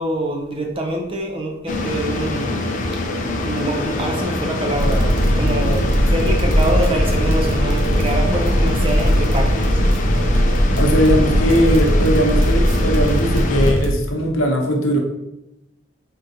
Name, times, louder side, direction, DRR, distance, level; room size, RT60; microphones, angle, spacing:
voice 1, 0.0-2.6 3.4-9.8, right 1 dB, 25° right, 2 dB, 0.5 m, -25 dB
sound 1, 1.7-13.7, left 2 dB, 40° left, 0.4 m, -25 dB
sound 2, 4.7-13.9, equal, 65° right, 0.7 m, -19 dB
voice 2, 10.8-15.0, equal, 75° left, 1 dB, 0.8 m, -19 dB
3.8 x 3.6 x 2.8 m, 0.88 s
head